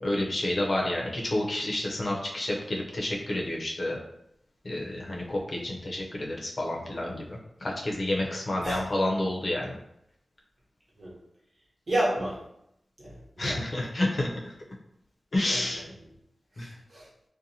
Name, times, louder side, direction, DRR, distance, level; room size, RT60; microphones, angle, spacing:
voice 1, 0.0-4.0 4.6-9.8 13.4-14.5 15.3-15.9 16.6-16.7, left 1 dB, 55° left, -2 dB, 0.6 m, -29 dB
voice 2, 11.9-12.4 13.0-13.9 15.5-15.8 16.5-17.1, right 1 dB, 65° right, -7 dB, 1.1 m, -32 dB
2.6 x 2.2 x 2.7 m, 0.78 s
wide cardioid pair, 60°, 0 cm